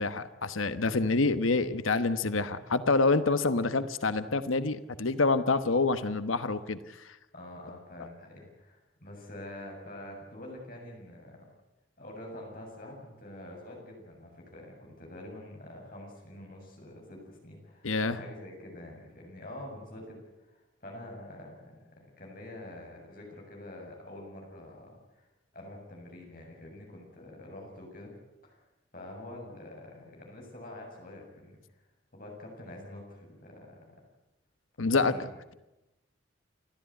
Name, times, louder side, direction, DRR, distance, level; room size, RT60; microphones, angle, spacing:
voice 1, 0.0-6.8 17.8-18.2 34.8-35.1, left 3 dB, 90° left, 12 dB, 1.1 m, -27 dB
voice 2, 7.3-11.5 12.0-20.2 20.5-25.3 25.5-28.1 28.4-28.6 28.9-31.6 32.1-34.0 34.8-35.3, left 1 dB, 45° left, 0 dB, 7.4 m, -46 dB
29.5 x 13.0 x 9.5 m, 0.97 s
head